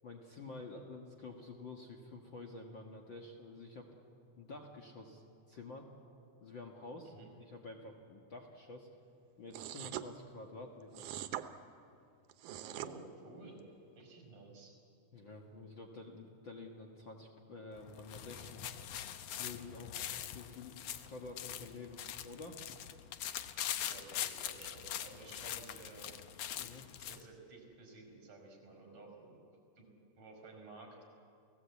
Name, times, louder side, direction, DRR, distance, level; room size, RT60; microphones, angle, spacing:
voice 1, 0.0-3.9 4.4-5.9 6.4-7.1 7.5-8.9 9.4-11.1 15.1-18.7 19.4-22.6 26.5-26.9, left 3 dB, 45° left, 1 dB, 2.0 m, -49 dB
sound 1, 9.5-10.1 10.9-11.5 12.3-12.9, right 13 dB, 85° right, 2.4 m, -42 dB
voice 2, 12.6-13.7 14.0-14.7 20.0-20.2 23.7-26.1 27.0-29.4 29.8-29.9 30.2-31.0, right 3 dB, 55° right, 3 dB, 6.3 m, -54 dB
sound 2, 17.8-27.2, left 10 dB, 70° left, 1.8 m, -43 dB
29.5 x 17.5 x 8.4 m, 2.6 s
omnidirectional pair, 3.5 m